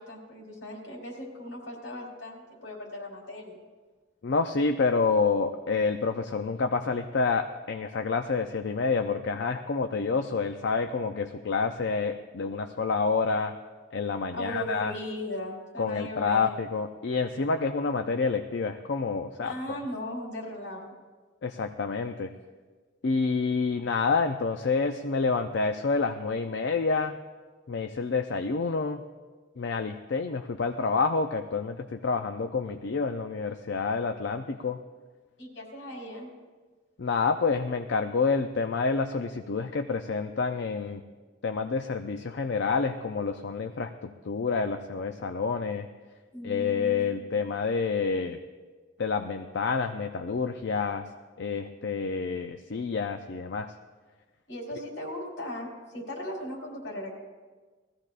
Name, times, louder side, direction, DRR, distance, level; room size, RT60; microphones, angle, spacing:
voice 1, 0.0-3.6 14.3-16.6 19.4-21.0 35.4-36.3 46.3-47.5 54.5-57.1, left 1 dB, 85° left, -1 dB, 3.8 m, -38 dB
voice 2, 4.2-13.5 13.9-14.9 15.8-19.8 21.4-22.3 23.0-27.2 27.7-29.0 29.6-34.8 37.0-41.0 41.4-45.9 46.4-48.4 49.0-51.0 51.4-53.7, left 4 dB, 65° left, 6 dB, 0.5 m, -28 dB
20.5 x 15.0 x 2.5 m, 1.4 s
head